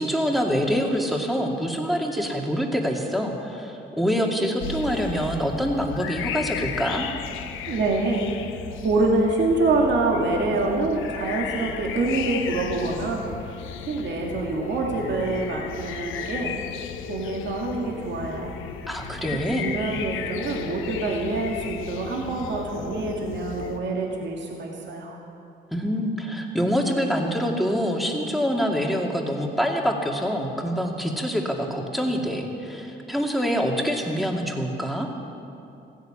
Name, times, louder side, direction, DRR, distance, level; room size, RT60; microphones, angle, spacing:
voice 1, 0.0-7.1 18.9-19.7 25.7-35.1, equal, ahead, 1 dB, 2.3 m, -25 dB
sound 1, 4.6-23.8, left 7 dB, 85° left, 0.9 m, -35 dB
voice 2, 7.7-8.3 8.8-13.2 13.9-16.5 17.1-18.5 19.6-25.2, right 2 dB, 65° right, 0 dB, 2.2 m, -26 dB
15.5 x 10.5 x 8.8 m, 2.7 s
cardioid pair, 90°, 20 cm